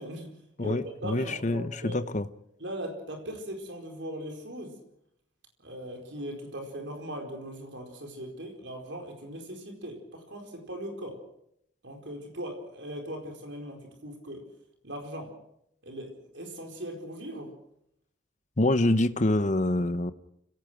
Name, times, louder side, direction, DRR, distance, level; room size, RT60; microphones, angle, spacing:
voice 1, 0.0-2.0 2.6-4.8 5.6-11.2 11.8-14.5 14.8-15.3 15.8-17.5, equal, 60° right, 3 dB, 4.6 m, -39 dB
voice 2, 0.6-2.3 18.6-20.1, left 1 dB, 35° left, 12 dB, 0.9 m, -26 dB
29.5 x 17.0 x 6.2 m, 0.75 s
head